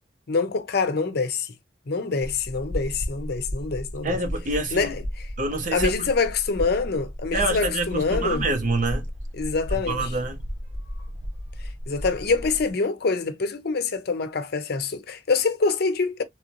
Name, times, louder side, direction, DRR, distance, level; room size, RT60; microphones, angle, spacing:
voice 1, 0.3-1.5 1.9-4.2 4.7-5.0 5.7-8.5 9.4-10.1 11.9-16.2, left 4 dB, 60° left, 0.6 m, -25 dB
sound 1, 2.2-12.7, equal, 75° right, 1.1 m, -34 dB
voice 2, 4.0-4.9 5.4-6.1 7.3-9.1 9.9-10.4, right 2 dB, 45° right, 0.9 m, -27 dB
3.2 x 2.6 x 2.8 m
head